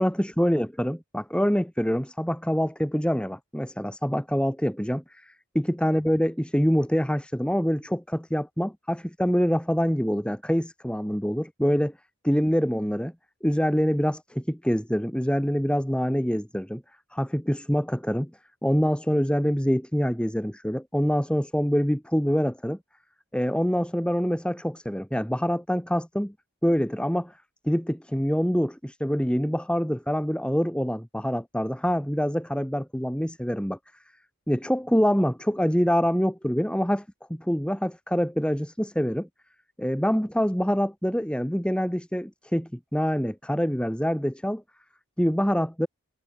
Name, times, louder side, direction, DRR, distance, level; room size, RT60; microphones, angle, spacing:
voice 1, 0.0-11.9 12.2-13.1 13.4-16.8 17.1-18.3 18.6-22.8 23.3-26.3 26.6-27.3 27.6-33.8 34.5-37.0 37.3-39.3 39.8-44.6 45.2-45.9, equal, 5° left, 2.6 m, -25 dB
head